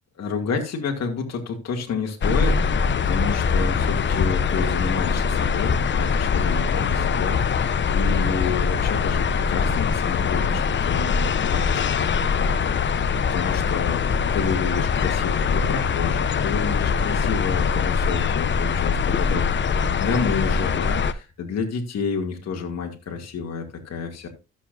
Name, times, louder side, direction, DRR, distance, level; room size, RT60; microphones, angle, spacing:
voice 1, 0.2-2.6 3.0-24.3, left 5 dB, 60° left, 2 dB, 2.4 m, -30 dB
sound 1, 2.2-21.1, left 6 dB, 40° left, 0.7 m, -22 dB
13.5 x 7.4 x 2.6 m, 0.29 s
cardioid pair, 90°, 30 cm